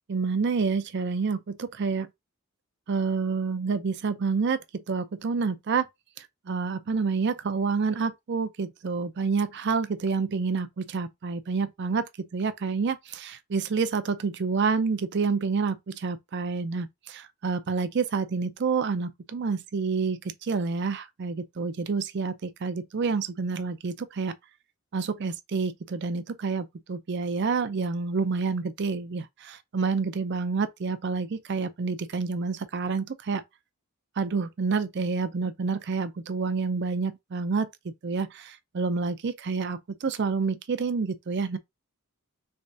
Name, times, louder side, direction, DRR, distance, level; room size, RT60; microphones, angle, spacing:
voice 1, 0.1-2.1 2.9-5.9 6.2-24.3 24.9-33.4 34.2-41.6, right 4 dB, 50° right, 0.5 m, -28 dB
3.5 x 3.3 x 2.6 m
head